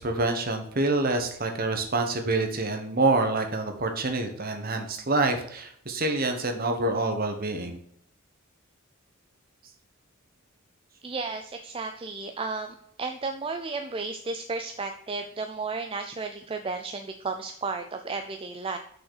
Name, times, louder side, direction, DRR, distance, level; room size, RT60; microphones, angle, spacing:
voice 1, 0.0-7.8, right 2 dB, 45° right, 5 dB, 1.3 m, -27 dB
voice 2, 11.0-18.8, right 4 dB, 25° right, 6 dB, 0.5 m, -33 dB
6.5 x 5.9 x 6.5 m, 0.65 s
head